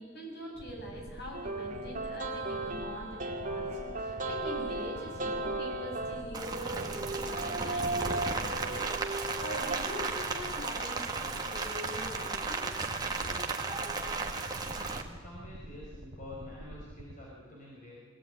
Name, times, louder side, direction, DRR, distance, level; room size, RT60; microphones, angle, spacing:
voice 1, 0.0-13.7, left 1 dB, 55° left, -1 dB, 7.6 m, -44 dB
sound 1, 0.5-17.1, equal, 65° right, 2.0 m, -47 dB
sound 2, 1.3-9.8, right 2 dB, 40° right, 2.4 m, -36 dB
Rain, 6.3-15.0, right 4 dB, 20° right, 1.9 m, -35 dB
voice 2, 15.0-18.0, left 1 dB, 40° left, -5 dB, 5.3 m, -48 dB
22.5 x 17.5 x 9.4 m, 1.4 s
head